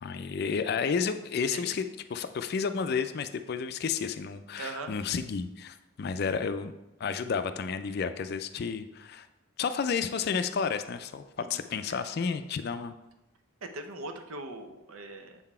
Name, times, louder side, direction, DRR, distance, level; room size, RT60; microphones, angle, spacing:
voice 1, 0.0-1.8 2.1-6.7 7.0-9.3 9.6-12.9, left 6 dB, 50° left, 10 dB, 0.3 m, -31 dB
voice 2, 4.6-4.9 11.4-11.6 11.9-12.0 13.6-15.4, right 2 dB, 80° right, 7 dB, 0.7 m, -40 dB
7.5 x 4.0 x 4.3 m, 0.96 s
head